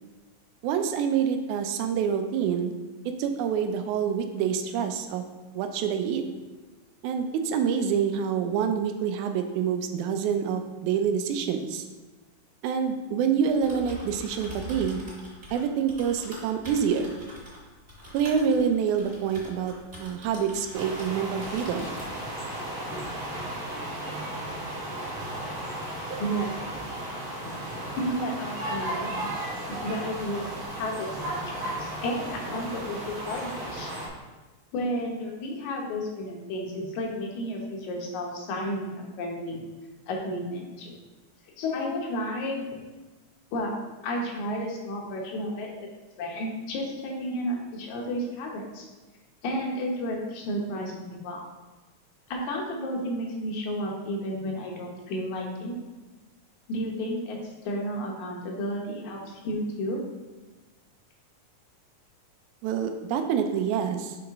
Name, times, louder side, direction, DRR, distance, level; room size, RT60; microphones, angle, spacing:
voice 1, 0.6-2.7 3.2-5.2 5.6-6.2 7.0-11.8 12.6-15.0 15.5-17.1 18.1-19.7 20.0-21.9 62.6-64.2, right 7 dB, 90° right, 7 dB, 2.0 m, -27 dB
Typing, 13.5-21.1 21.4-22.2, equal, 25° right, 1.4 m, -44 dB
sound 1, 20.7-34.1, right 1 dB, 65° right, 0.8 m, -35 dB
voice 2, 26.2-26.5 27.5-29.3 29.7-33.9 34.7-39.6 40.1-40.9 41.6-42.7 43.5-43.7 44.0-45.7 46.2-48.8 49.4-51.4 52.3-55.7 56.7-60.0, equal, 80° left, 0 dB, 2.3 m, -32 dB
6.1 x 4.8 x 3.5 m, 1.2 s
omnidirectional pair, 3.4 m